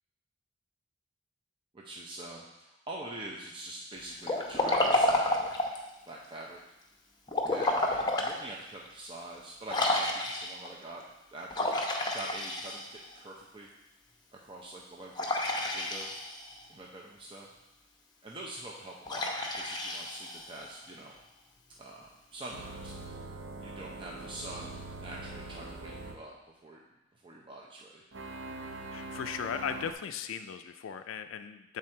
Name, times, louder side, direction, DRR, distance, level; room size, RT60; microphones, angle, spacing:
voice 1, 1.7-5.5 6.1-6.6 7.5-11.0 11.3-11.6 12.1-13.7 14.3-15.3 15.6-16.1 16.7-17.5 18.2-21.2 21.8-22.9 23.6-26.8 27.1-28.0, right 1 dB, 25° right, -2 dB, 0.6 m, -45 dB
Liquid, 4.2-5.9 7.3-8.4 8.9-9.0 9.7-10.7 11.5-13.1 15.2-16.5 19.1-20.7, left 1 dB, 20° left, 0.7 m, -30 dB
sound 1, 22.5-26.2 28.1-29.9, right 2 dB, 85° right, 0.7 m, -43 dB
voice 2, 28.9-31.8, left 7 dB, 90° left, 9 dB, 0.3 m, -37 dB
7.5 x 3.7 x 4.3 m, 0.95 s
head